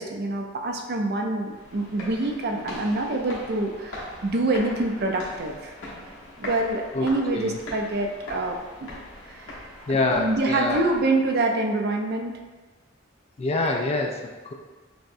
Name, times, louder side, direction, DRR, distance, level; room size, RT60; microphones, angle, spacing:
voice 1, 0.0-5.7 6.4-8.9 9.3-12.3, right 2 dB, 55° right, 2 dB, 0.5 m, -26 dB
sound 1, 1.4-11.4, left 1 dB, 75° left, 1.1 m, -40 dB
voice 2, 9.9-10.8 13.4-14.5, left 2 dB, 30° left, 1 dB, 0.4 m, -26 dB
6.0 x 2.1 x 2.6 m, 1.3 s
head